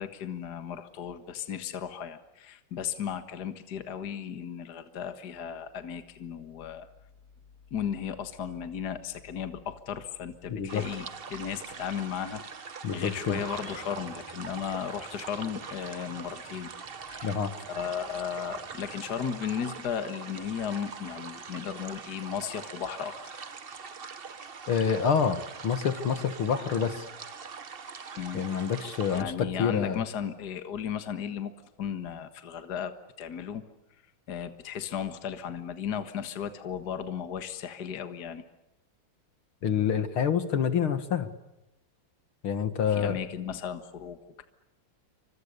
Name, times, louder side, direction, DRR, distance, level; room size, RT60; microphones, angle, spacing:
voice 1, 0.0-6.9 7.7-16.7 17.1-17.4 17.7-23.4 28.2-28.4 29.1-31.5 31.8-33.6 34.3-38.4 42.9-44.4, left 8 dB, 50° left, 9 dB, 2.0 m, -35 dB
voice 2, 10.5-10.8 12.8-13.4 17.2-17.5 24.7-27.0 28.3-30.0 39.6-41.3 42.4-43.2, left 7 dB, 70° left, 10 dB, 2.6 m, -27 dB
sound 1, 10.7-29.2, right 5 dB, 40° right, 0.9 m, -43 dB
Engine starting / Idling, 13.1-23.7, right 1 dB, 10° right, 6.2 m, -53 dB
29.0 x 25.5 x 6.8 m, 0.93 s
omnidirectional pair, 2.4 m